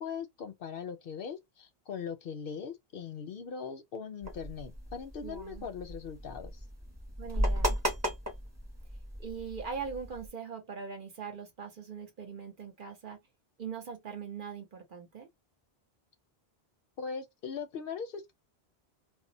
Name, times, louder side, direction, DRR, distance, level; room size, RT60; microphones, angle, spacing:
voice 1, 0.0-6.6 17.0-18.3, left 6 dB, 65° left, 0.7 m, -40 dB
sound 1, 4.2-10.3, equal, 15° right, 0.9 m, -35 dB
voice 2, 5.2-5.7 7.2-7.8 9.2-13.2 13.6-15.3, right 6 dB, 55° right, 0.9 m, -41 dB
2.1 x 2.1 x 3.8 m
omnidirectional pair, 1.1 m